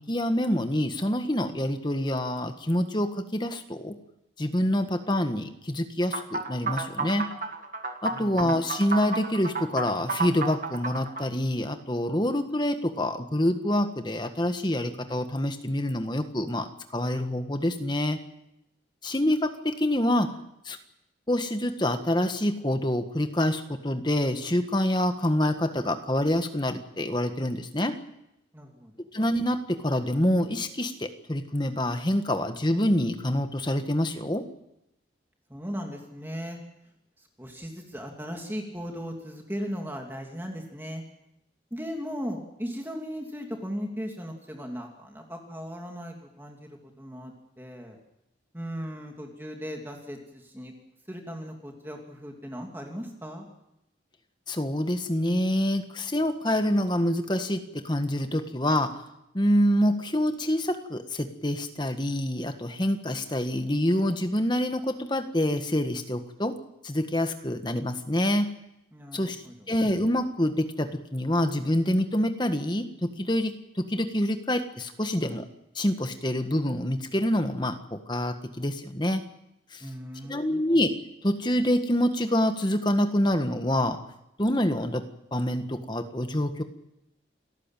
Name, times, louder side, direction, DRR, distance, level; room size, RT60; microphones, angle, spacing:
voice 1, 0.0-4.0 4.4-7.3 8.0-18.2 19.0-20.3 20.6-20.8 21.3-28.0 29.1-34.4 54.5-58.9 59.3-66.5 66.8-68.5 69.1-69.4 69.7-75.5 75.7-79.2 79.7-79.8 80.2-80.9 81.2-84.0 84.4-85.0 85.3-86.6, left 1 dB, 25° left, 7 dB, 1.6 m, -26 dB
sound 1, 6.1-11.3, right 4 dB, 45° right, 1.8 m, -31 dB
voice 2, 28.5-29.1 35.5-36.6 37.2-41.0 41.7-48.0 48.5-50.7 51.1-53.5 68.9-69.7 79.8-80.6, equal, 10° right, 1 dB, 2.8 m, -37 dB
28.0 x 14.0 x 9.1 m, 0.85 s
head